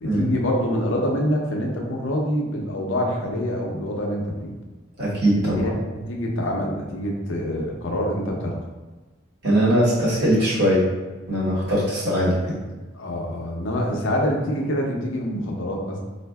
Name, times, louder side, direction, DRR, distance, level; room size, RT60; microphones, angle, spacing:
voice 1, 0.0-4.5 5.4-5.7 6.1-8.6 12.9-16.0, equal, 85° left, 0 dB, 0.6 m, -25 dB
voice 2, 5.0-5.6 9.4-10.8 11.3-12.6, equal, 60° right, -7 dB, 1.1 m, -20 dB
4.3 x 2.5 x 2.2 m, 1.2 s
head